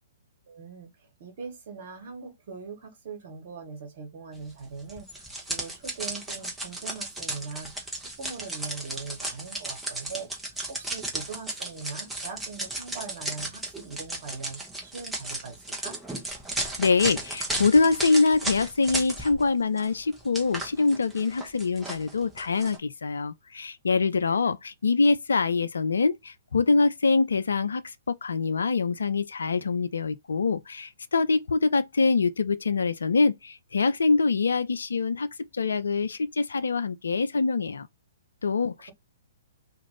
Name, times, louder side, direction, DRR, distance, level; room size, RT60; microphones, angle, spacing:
voice 1, 0.5-0.9 1.2-5.1 5.5-10.3 10.7-16.0, right 5 dB, 50° right, 1.3 m, -41 dB
sound 1, 4.9-19.5 19.8-22.8, right 1 dB, 5° right, 0.9 m, -35 dB
voice 2, 16.8-37.9 38.4-38.9, left 4 dB, 70° left, 0.4 m, -24 dB
2.5 x 2.5 x 3.0 m
figure-of-eight pair, 120°, 0 cm